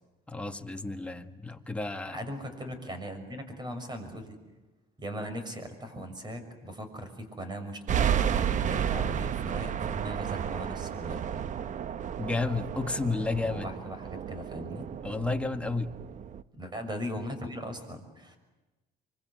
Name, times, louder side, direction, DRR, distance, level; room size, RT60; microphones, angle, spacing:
voice 1, 0.3-2.3 12.2-13.7 15.0-15.9, left 3 dB, 5° left, 5 dB, 1.8 m, -31 dB
voice 2, 2.1-4.4 5.0-11.2 13.5-14.9 16.6-18.4, equal, 25° right, 8 dB, 6.4 m, -39 dB
sound 1, 7.9-16.4, right 8 dB, 50° right, 0.9 m, -32 dB
26.0 x 25.0 x 8.2 m, 1.1 s
cardioid pair, 110°, 17 cm